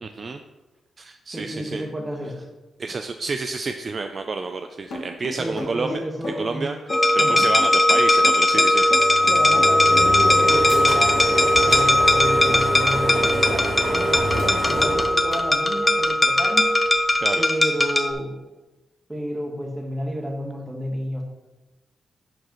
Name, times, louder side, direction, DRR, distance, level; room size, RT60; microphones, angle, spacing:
voice 1, 0.0-0.4 1.0-1.8 2.8-6.0 6.3-8.9 17.2-17.4, right 4 dB, 40° right, 6 dB, 0.3 m, -29 dB
voice 2, 1.3-2.5 5.4-6.7 7.2-7.5 9.3-16.7 17.4-18.4 19.1-21.2, equal, 10° right, 2 dB, 1.2 m, -31 dB
sound 1, 4.9-10.1, left 2 dB, 75° left, 1.7 m, -33 dB
sound 2, 6.9-18.1, left 1 dB, 15° left, 0.6 m, -19 dB
sound 3, 8.7-16.0, equal, 90° right, 2.2 m, -28 dB
11.0 x 4.8 x 3.0 m, 1.1 s
cardioid pair, 120°, 0 cm